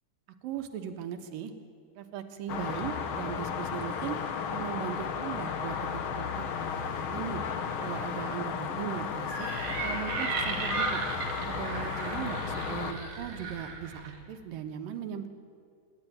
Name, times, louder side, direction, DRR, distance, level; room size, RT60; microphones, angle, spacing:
voice 1, 0.4-1.5 2.0-4.2 4.5-6.5 6.9-7.4 7.8-11.0 11.4-15.3, right 9 dB, 85° right, 6 dB, 3.0 m, -38 dB
sound 1, 2.5-12.9, left 6 dB, 65° left, 1.3 m, -34 dB
Screaming, 9.2-14.1, left 2 dB, 40° left, 3.2 m, -44 dB
sound 2, 9.4-14.2, right 5 dB, 65° right, 3.5 m, -36 dB
25.0 x 11.0 x 9.3 m, 2.3 s
omnidirectional pair, 3.9 m